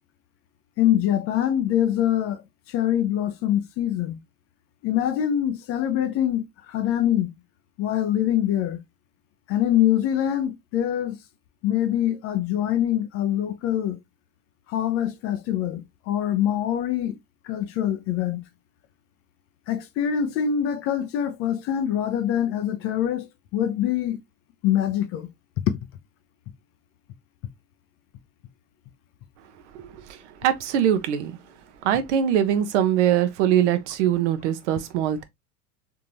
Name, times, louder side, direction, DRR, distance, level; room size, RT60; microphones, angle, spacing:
voice 1, 0.8-2.4 2.7-4.2 4.8-7.3 7.8-8.8 9.5-11.2 11.6-14.0 14.7-17.2 17.4-18.4 19.7-23.3 23.5-24.2 24.6-25.3, left 11 dB, 30° left, 0.6 m, -24 dB
voice 2, 29.7-31.4 31.8-35.2, right 10 dB, 50° right, 0.9 m, -22 dB
3.8 x 3.7 x 2.9 m
figure-of-eight pair, 85°, 46 cm